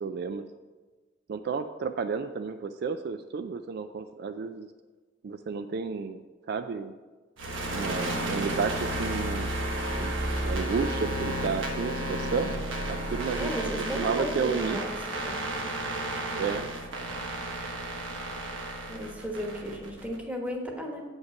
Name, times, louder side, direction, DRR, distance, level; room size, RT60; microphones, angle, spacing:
voice 1, 0.0-0.4 1.3-4.7 5.2-6.9 7.6-9.5 10.0-10.1 10.4-12.5 12.9-13.5 14.0-14.8 16.4-16.7, right 5 dB, 55° right, 9 dB, 0.3 m, -32 dB
sound 1, 7.4-20.2, right 1 dB, 80° right, 1.3 m, -32 dB
voice 2, 13.4-14.9 15.2-15.4 18.9-21.0, equal, 10° right, 0 dB, 1.2 m, -34 dB
8.2 x 5.3 x 5.8 m, 1.3 s
head